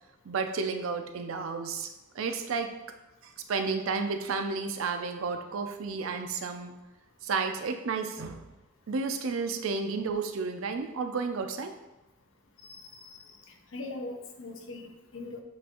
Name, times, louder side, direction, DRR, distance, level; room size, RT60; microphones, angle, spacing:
voice 1, 0.3-1.9 2.1-2.7 3.5-6.8 7.2-8.4 8.9-11.7, right 4 dB, 80° right, 6 dB, 0.5 m, -32 dB
voice 2, 12.6-13.1 13.7-15.4, left 2 dB, 70° left, 4 dB, 0.6 m, -41 dB
7.3 x 2.5 x 2.9 m, 1.0 s
head